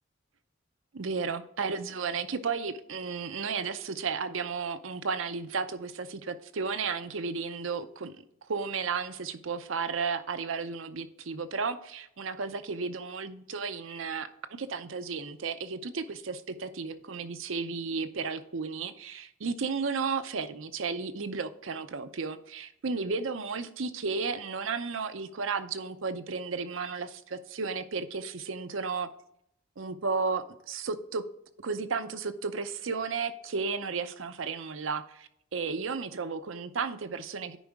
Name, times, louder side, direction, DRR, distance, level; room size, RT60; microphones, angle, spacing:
voice 1, 0.9-8.1 8.5-14.3 14.6-29.1 29.8-31.2 31.6-37.6, right 5 dB, 75° right, 0.6 m, -33 dB
10.0 x 4.8 x 3.5 m
head